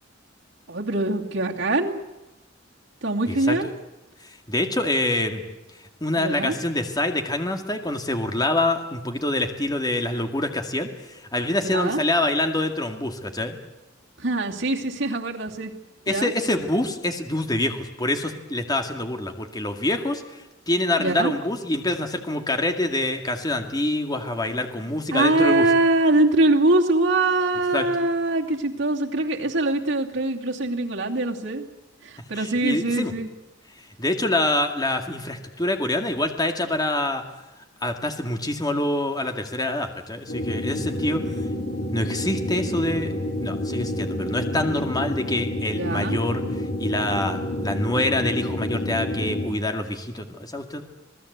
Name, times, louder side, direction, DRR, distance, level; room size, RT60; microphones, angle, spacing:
voice 1, 0.7-2.0 3.0-3.7 6.2-6.5 11.6-12.0 14.2-15.7 16.1-16.3 21.0-21.3 25.1-31.7 32.0-33.3 45.8-46.2, right 2 dB, 85° right, -2 dB, 2.7 m, -23 dB
voice 2, 3.3-3.7 4.2-5.4 6.0-13.6 16.1-25.6 27.7-27.9 32.3-33.1 34.0-37.2 37.8-41.2 41.9-43.1 43.4-46.4 46.8-50.8, left 1 dB, 20° left, 5 dB, 2.2 m, -26 dB
sound 1, 40.3-49.5, left 1 dB, 90° left, 3.7 m, -29 dB
27.0 x 19.0 x 8.2 m, 1.0 s
head